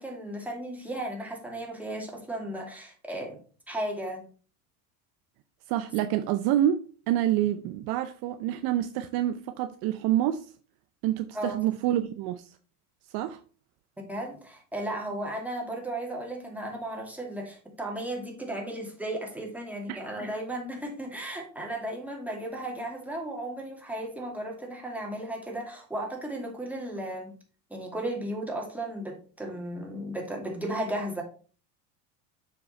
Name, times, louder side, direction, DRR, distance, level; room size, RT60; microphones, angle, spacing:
voice 1, 0.0-3.4 3.7-4.3 11.3-11.6 14.0-27.3 27.7-31.2, right 1 dB, 5° right, 2.5 m, -35 dB
voice 2, 5.7-10.5 11.0-12.5 13.1-13.4 19.9-20.0, right 12 dB, 50° right, 0.7 m, -27 dB
7.3 x 4.6 x 4.3 m
hypercardioid pair, 90°, 47 cm